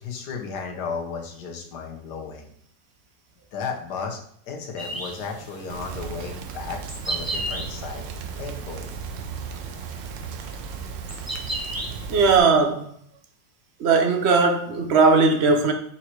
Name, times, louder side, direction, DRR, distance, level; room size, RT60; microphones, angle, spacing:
voice 1, 0.0-2.5 3.5-4.2 4.5-6.8 7.1-8.0 8.4-8.9, left 5 dB, 65° left, 1.7 m, -34 dB
sound 1, 4.8-12.3, right 1 dB, 25° right, 0.5 m, -36 dB
Rain, 5.7-12.4, right 6 dB, 90° right, 1.3 m, -36 dB
voice 2, 12.1-12.9 13.8-15.7, right 4 dB, 45° right, 0.9 m, -18 dB
5.6 x 4.4 x 4.6 m
omnidirectional pair, 1.9 m